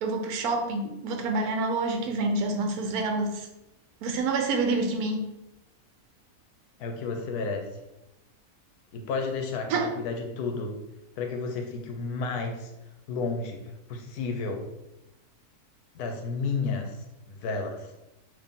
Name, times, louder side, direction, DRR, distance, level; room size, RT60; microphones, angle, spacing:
voice 1, 0.0-3.5 4.0-5.3 9.7-9.9, right 3 dB, 80° right, 4 dB, 1.1 m, -27 dB
voice 2, 6.8-7.7 8.9-10.7 11.2-12.7 13.1-14.6 15.9-17.0 17.3-17.9, left 4 dB, 90° left, 3 dB, 1.2 m, -32 dB
4.1 x 2.8 x 3.6 m, 0.93 s
omnidirectional pair, 1.6 m